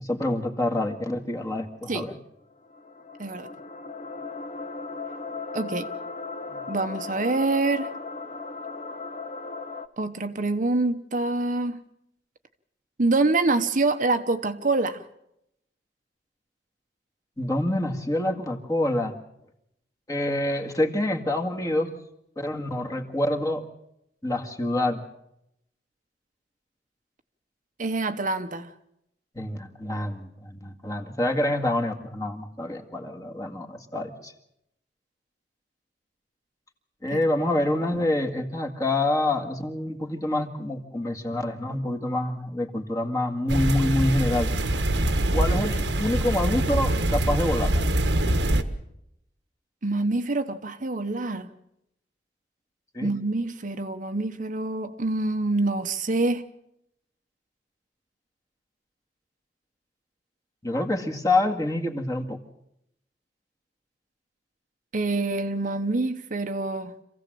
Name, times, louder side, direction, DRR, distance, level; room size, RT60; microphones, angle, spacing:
voice 1, 0.0-2.2 6.5-6.6 17.4-19.1 20.1-21.9 22.3-23.7 24.2-25.0 29.3-34.3 37.0-44.5 45.3-47.8 52.9-53.1 60.6-62.4, left 1 dB, 20° left, 1.9 m, -27 dB
sound 1, 2.4-9.9, left 4 dB, 40° left, 0.9 m, -37 dB
voice 2, 3.2-3.5 5.5-5.9 6.7-7.9 10.0-11.8 13.0-15.0 27.8-28.7 37.1-37.2 49.8-51.5 53.0-56.4 64.9-66.9, right 2 dB, 50° right, 1.0 m, -26 dB
sound 2, 43.5-48.6, right 1 dB, 90° right, 1.4 m, -24 dB
26.5 x 16.0 x 7.7 m
head